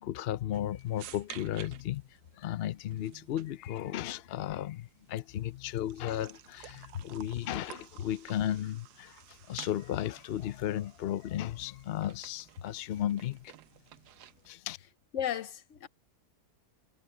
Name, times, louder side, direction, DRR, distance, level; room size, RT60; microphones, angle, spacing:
voice 1, 0.0-2.0 2.4-9.2 9.5-13.5 14.5-14.8, left 12 dB, 75° left, 0.5 m, -34 dB
sound 1, 0.5-14.5, right 12 dB, 80° right, 1.2 m, -53 dB
voice 2, 15.1-15.9, left 9 dB, 55° left, 1.1 m, -34 dB
omnidirectional pair, 1.7 m